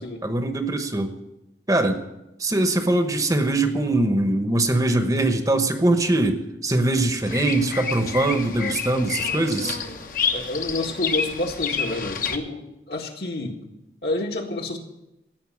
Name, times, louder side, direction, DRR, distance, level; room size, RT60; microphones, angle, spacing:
voice 1, 0.2-1.1 1.7-2.0 2.4-9.8, right 2 dB, 20° right, 8 dB, 1.0 m, -22 dB
Bird vocalization bird call bird song, 7.3-12.4, left 6 dB, 50° left, 1.1 m, -29 dB
voice 2, 10.3-13.6 14.0-14.8, left 2 dB, 65° left, 2 dB, 1.9 m, -29 dB
16.5 x 5.6 x 9.8 m, 0.92 s
head